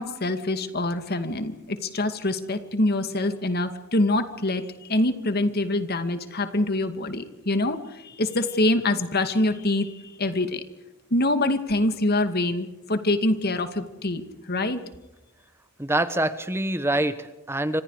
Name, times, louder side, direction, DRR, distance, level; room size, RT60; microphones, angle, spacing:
voice 1, 0.0-10.6 11.1-14.8, left 2 dB, 50° left, 9 dB, 2.4 m, -25 dB
voice 2, 15.8-17.8, right 1 dB, 10° right, 12 dB, 1.1 m, -25 dB
29.0 x 26.0 x 5.0 m, 1.0 s
head